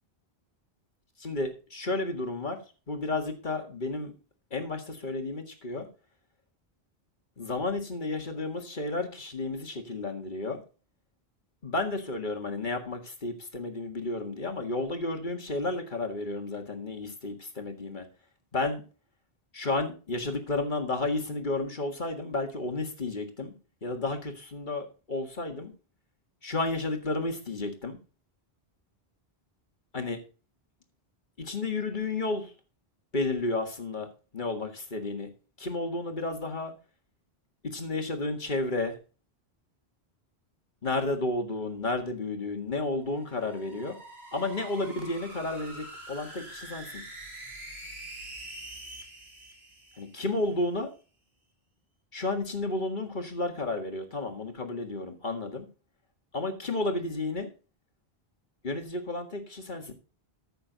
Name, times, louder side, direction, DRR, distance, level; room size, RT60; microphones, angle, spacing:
voice 1, 1.2-2.6 2.9-4.1 4.5-5.9 7.4-10.6 11.6-18.1 18.5-18.8 19.5-23.5 23.8-25.7 26.4-28.0 29.9-30.2 31.4-32.5 33.1-34.1 34.3-35.3 35.6-36.7 37.6-39.0 40.8-44.0 44.3-47.0 50.0-50.9 52.1-55.7 56.3-57.5 58.6-59.9, left 2 dB, 50° left, 5 dB, 1.9 m, -32 dB
sound 1, 43.0-50.5, right 1 dB, 80° right, 3.1 m, -45 dB
14.0 x 6.8 x 4.0 m, 0.35 s
omnidirectional pair, 1.1 m